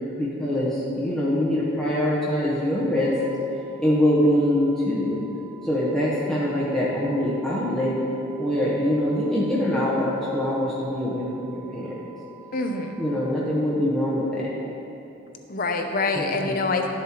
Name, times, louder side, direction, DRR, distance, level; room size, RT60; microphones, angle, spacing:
voice 1, 0.2-3.1 3.8-5.2 5.6-7.9 8.4-11.9 13.0-14.4 16.1-16.5, left 1 dB, ahead, -9 dB, 1.0 m, -24 dB
sound 1, 3.0-13.0, right 8 dB, 25° left, 1.2 m, -49 dB
voice 2, 12.5-13.0 15.5-16.9, left 3 dB, 45° left, 4 dB, 0.7 m, -25 dB
12.5 x 7.3 x 3.0 m, 2.9 s
head